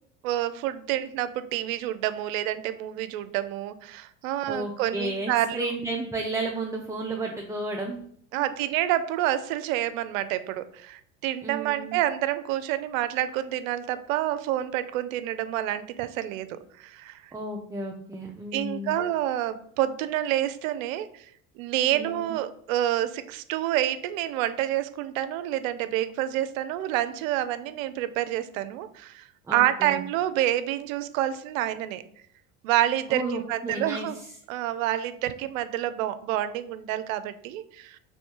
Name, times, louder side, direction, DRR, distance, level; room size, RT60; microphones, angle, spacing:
voice 1, 0.2-5.6 8.3-17.2 18.5-21.3 21.6-32.0 32.6-34.2 34.5-38.0, right 13 dB, 70° right, 13 dB, 0.5 m, -28 dB
voice 2, 4.5-8.0 11.4-12.0 17.3-19.0 21.9-22.3 29.5-30.0 33.1-34.1, right 2 dB, 10° right, 1 dB, 0.4 m, -32 dB
3.2 x 3.2 x 4.4 m, 0.63 s
hypercardioid pair, 80°, 41 cm